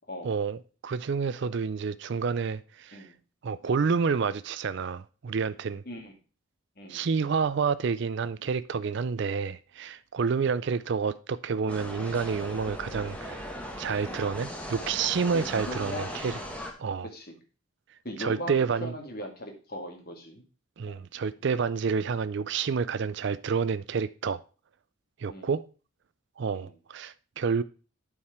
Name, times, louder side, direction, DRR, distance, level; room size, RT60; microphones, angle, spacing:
voice 1, 0.2-3.1 3.4-5.8 6.9-13.5 13.8-16.4 16.8-17.1 18.2-18.9 20.8-24.4 25.2-25.6 26.4-27.6, right 5 dB, 55° right, 0.4 m, -29 dB
voice 2, 6.8-7.1 15.5-16.2 17.1-17.3 18.0-20.4 20.8-21.0 25.3-25.5 26.5-26.7, equal, 45° left, 2.1 m, -39 dB
sound 1, 11.7-16.7, equal, 5° left, 1.3 m, -38 dB
8.5 x 4.9 x 5.8 m
head